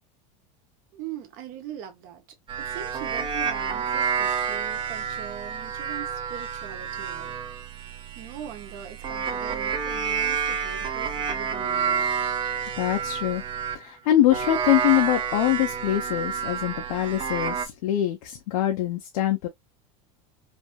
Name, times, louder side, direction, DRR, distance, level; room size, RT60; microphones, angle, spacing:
voice 1, 0.9-2.2 2.6-7.3 8.2-12.0, right 10 dB, 55° right, 1.1 m, -41 dB
sound 1, 2.5-13.8 14.3-17.7, right 7 dB, 25° right, 0.7 m, -29 dB
voice 2, 12.8-13.4 13.7-19.5, left 13 dB, 85° left, 0.8 m, -24 dB
3.4 x 2.6 x 2.2 m
supercardioid pair, 135°, 18 cm